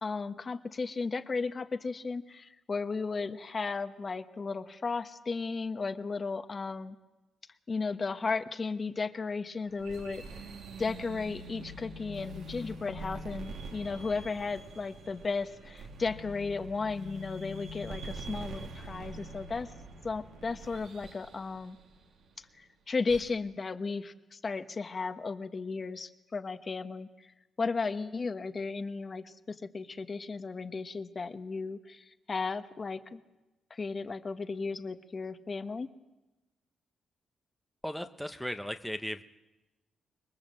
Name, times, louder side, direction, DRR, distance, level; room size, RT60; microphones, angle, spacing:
voice 1, 0.0-6.9 7.7-10.2 10.8-19.7 20.0-21.8 22.6-27.1 27.6-33.2 33.7-35.9, left 4 dB, 35° left, 9 dB, 1.3 m, -35 dB
sound 1, 9.7-22.3 23.1-23.3, right 1 dB, 80° right, 2.9 m, -44 dB
voice 2, 37.8-39.2, equal, ahead, 6 dB, 1.0 m, -36 dB
25.5 x 21.5 x 7.7 m, 1.0 s
cardioid pair, 105°, 0 cm